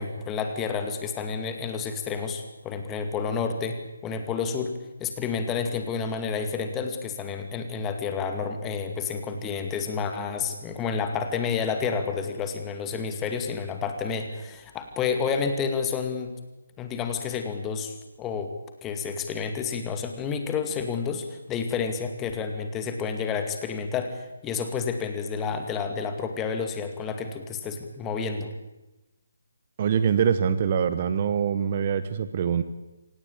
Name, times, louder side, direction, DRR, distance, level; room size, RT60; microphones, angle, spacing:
voice 1, 0.0-4.7 5.0-16.3 16.8-18.5 18.8-28.5, left 5 dB, 15° left, 6 dB, 2.4 m, -30 dB
voice 2, 29.8-32.6, right 7 dB, 35° right, 12 dB, 1.1 m, -24 dB
26.0 x 18.0 x 8.7 m, 1.0 s
figure-of-eight pair, 145°, 0 cm